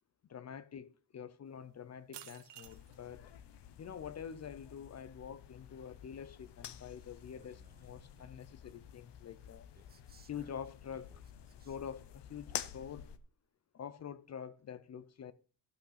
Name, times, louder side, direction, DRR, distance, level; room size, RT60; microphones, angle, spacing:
voice 1, 0.3-3.3 3.8-9.7 10.2-11.1 11.6-13.1 13.7-15.3, left 8 dB, 40° left, 0.5 m, -46 dB
sound 1, 1.5-11.2, right 11 dB, 80° right, 1.0 m, -61 dB
sound 2, 2.6-13.2, left 10 dB, 80° left, 1.0 m, -50 dB
Male speech man speaking, 7.2-8.5 9.7-12.2, right 5 dB, 25° right, 0.7 m, -66 dB
13.0 x 5.9 x 5.7 m
wide cardioid pair, 165°, 42 cm